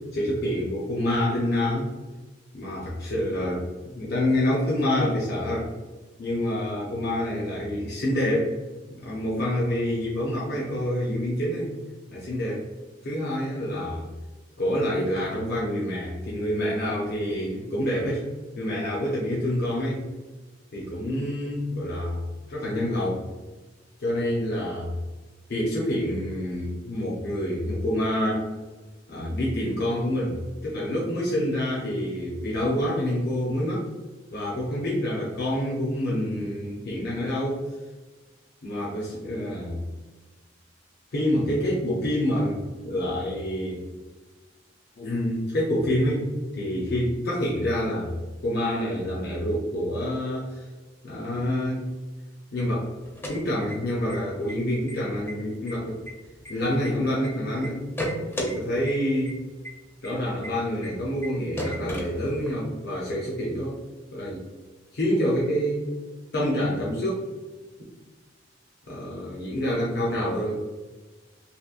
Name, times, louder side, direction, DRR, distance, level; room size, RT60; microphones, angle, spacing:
voice 1, 0.0-1.9 2.5-5.7 6.2-8.6 8.9-11.7 12.1-12.7 13.0-14.0 14.6-18.2 18.6-20.1 20.7-22.2 22.5-23.3 24.0-24.9 25.5-28.5 29.1-33.8 34.3-37.6 38.6-39.8 41.1-43.8 45.0-46.3 46.5-48.1 48.4-50.7 51.0-51.8 52.5-52.9 53.3-56.0 56.5-57.8 58.4-59.4 60.0-63.8 64.1-64.4 64.9-65.9 66.3-67.3 68.9-70.5, left 1 dB, 60° left, -5 dB, 0.6 m, -27 dB
sound 1, 53.0-54.1 54.5-54.6 54.9-55.3 55.7-57.3 57.6-58.5 58.9-59.0 59.3-59.4 59.6-59.7 60.0-60.1 60.4-60.5 60.8-60.9 61.2-61.3 61.6-62.6, equal, 15° left, 0.5 m, -33 dB
2.8 x 2.6 x 2.4 m, 1.2 s
head